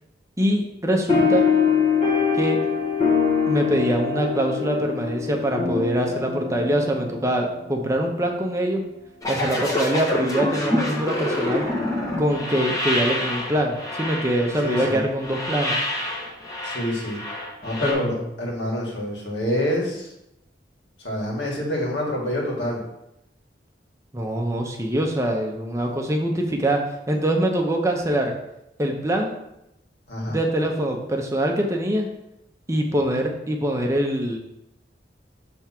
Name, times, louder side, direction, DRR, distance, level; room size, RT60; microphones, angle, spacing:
voice 1, 0.4-1.5 2.3-2.6 3.5-8.8 9.3-11.7 12.2-15.8 17.8-18.2 24.1-26.8 27.1-28.3 28.8-29.3 30.3-32.1 32.7-34.4, right 1 dB, 15° right, 2 dB, 0.7 m, -24 dB
sound 1, 1.1-8.0, left 6 dB, 35° left, 1.6 m, -23 dB
sound 2, 9.2-17.9, left 1 dB, 20° left, 1.3 m, -27 dB
voice 2, 14.6-15.0 16.6-17.2 17.6-20.1 21.0-22.8 30.1-30.4, left 1 dB, 80° left, -2 dB, 2.0 m, -26 dB
6.1 x 3.5 x 5.9 m, 0.84 s
head